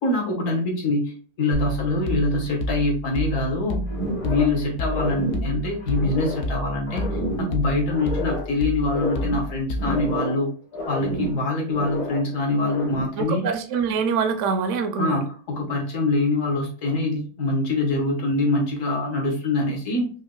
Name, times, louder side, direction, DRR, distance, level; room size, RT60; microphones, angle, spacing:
voice 1, 0.0-3.8 4.2-7.1 7.4-10.5 10.9-13.5 15.0-20.1, left 2 dB, 55° left, 0 dB, 1.3 m, -24 dB
sound 1, 1.5-10.2, equal, 75° left, 0.6 m, -30 dB
sound 2, 3.9-4.6 4.9-6.5 6.9-8.5 8.8-10.5 10.7-12.3 12.6-13.2, equal, 30° left, 0.7 m, -30 dB
voice 2, 13.2-15.3, right 5 dB, 65° right, 7 dB, 0.8 m, -24 dB
5.1 x 2.2 x 2.2 m, 0.41 s
omnidirectional pair, 1.7 m